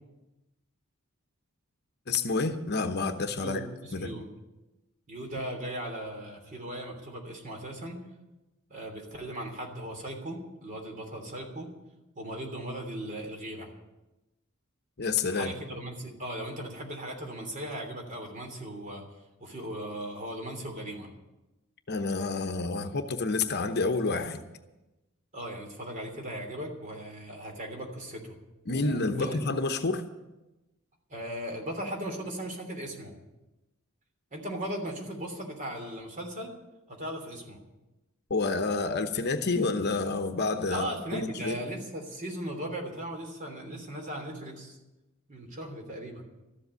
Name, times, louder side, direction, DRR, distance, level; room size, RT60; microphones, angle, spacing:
voice 1, 2.1-3.6 3.9-4.1 15.0-15.5 21.9-24.4 28.7-30.0 38.3-41.6, left 3 dB, 50° left, 7 dB, 0.9 m, -29 dB
voice 2, 3.4-4.2 5.1-8.0 8.7-11.7 12.1-13.7 15.3-19.0 19.4-21.1 25.3-28.3 28.7-29.5 31.1-33.1 34.3-36.5 36.9-37.6 40.7-44.8 45.3-46.2, right 1 dB, 35° right, 2 dB, 3.1 m, -38 dB
13.5 x 7.8 x 9.7 m, 1.0 s
head